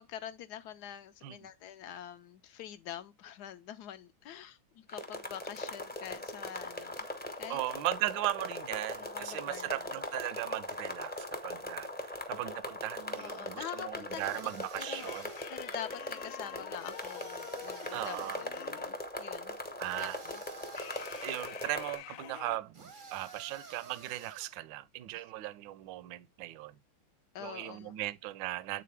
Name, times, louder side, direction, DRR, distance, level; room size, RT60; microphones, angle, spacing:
voice 1, 0.0-7.0 7.4-7.6 9.0-9.9 13.1-15.1 15.5-19.6 20.0-20.4 27.3-28.0, left 10 dB, 75° left, 0.9 m, -45 dB
sound 1, 4.9-22.0, left 1 dB, 15° left, 0.4 m, -40 dB
voice 2, 7.5-15.3 17.9-18.4 19.8-20.2 21.2-26.8 27.4-28.8, right 16 dB, 75° right, 1.2 m, -38 dB
sound 2, 14.1-15.7 16.8-18.6 19.8-21.6 22.7-24.6, right 5 dB, 50° right, 0.6 m, -51 dB
sound 3, 14.9-19.1 20.8-22.6, left 14 dB, 90° left, 1.4 m, -48 dB
8.4 x 3.9 x 3.3 m
omnidirectional pair, 2.2 m